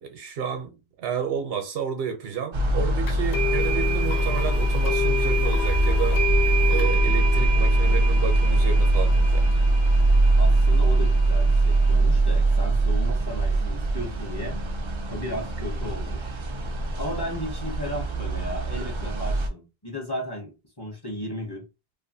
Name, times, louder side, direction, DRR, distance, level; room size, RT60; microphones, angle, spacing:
voice 1, 0.0-6.2 6.7-9.4, right 8 dB, 70° right, 0.9 m, -31 dB
sound 1, 2.5-19.5, right 1 dB, 50° right, 0.3 m, -22 dB
sound 2, 3.1-11.9, right 1 dB, 80° left, 0.9 m, -30 dB
voice 2, 10.4-14.6 15.1-16.4 17.0-21.6, equal, 30° left, 0.6 m, -35 dB
2.5 x 2.4 x 2.6 m
omnidirectional pair, 1.1 m